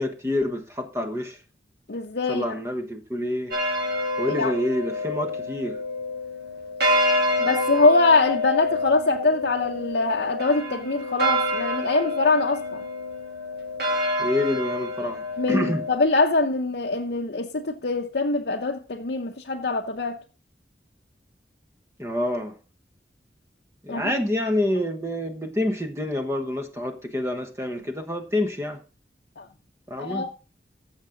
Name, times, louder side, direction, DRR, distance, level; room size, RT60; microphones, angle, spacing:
voice 1, 0.0-1.4 2.3-3.5 4.2-5.8 14.2-15.8 22.0-22.5 23.8-28.8 29.9-30.2, left 1 dB, 15° right, 1.2 m, -27 dB
voice 2, 1.9-2.4 4.4-4.5 7.4-12.8 15.4-20.2 23.9-24.1 29.4-29.5 30.0-30.3, left 3 dB, 70° left, 0.7 m, -23 dB
sound 1, 3.5-16.0, left 1 dB, 65° right, 2.5 m, -27 dB
14.5 x 6.7 x 3.8 m
head